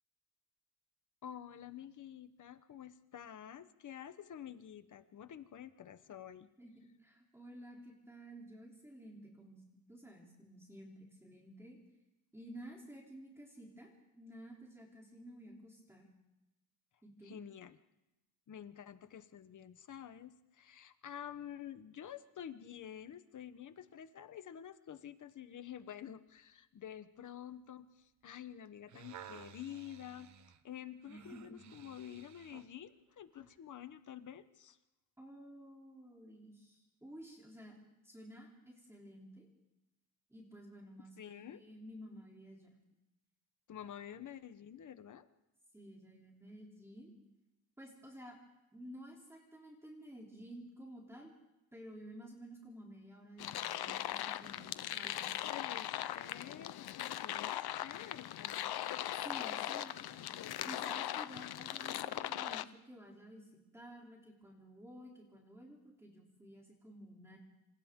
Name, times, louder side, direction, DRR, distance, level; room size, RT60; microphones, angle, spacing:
voice 1, 1.2-6.5 17.2-17.8 18.5-30.3 30.6-34.8 41.2-41.6 43.7-45.3 55.0-55.1 55.5-58.7, left 10 dB, 50° left, 11 dB, 1.1 m, -49 dB
voice 2, 7.0-9.6 9.9-11.8 12.3-16.1 17.0-17.4 31.1-31.6 35.2-37.8 38.0-39.5 40.3-42.8 45.7-47.1 47.8-48.4 48.7-51.3 51.7-55.5 59.1-60.3 60.6-67.4, equal, 5° right, -2 dB, 3.2 m, -53 dB
sound 1, 28.7-32.7 33.4-33.5, right 9 dB, 50° right, 0.8 m, -55 dB
sound 2, 53.4-62.6, left 12 dB, 75° left, 0.8 m, -40 dB
27.5 x 26.5 x 3.8 m, 0.96 s
wide cardioid pair, 170°, 38 cm